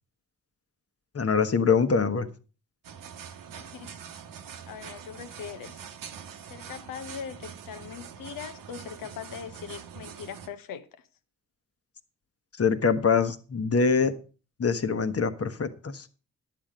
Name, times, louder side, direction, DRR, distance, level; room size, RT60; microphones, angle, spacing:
voice 1, 1.1-2.3 12.6-14.1 14.6-16.1, left 5 dB, 45° left, 1.1 m, -24 dB
sound 1, 2.8-10.5, right 7 dB, 85° right, 0.9 m, -44 dB
voice 2, 3.5-3.9 4.7-5.8 6.5-10.9, left 7 dB, 90° left, 0.9 m, -41 dB
10.5 x 7.7 x 5.1 m
supercardioid pair, 45°, 32 cm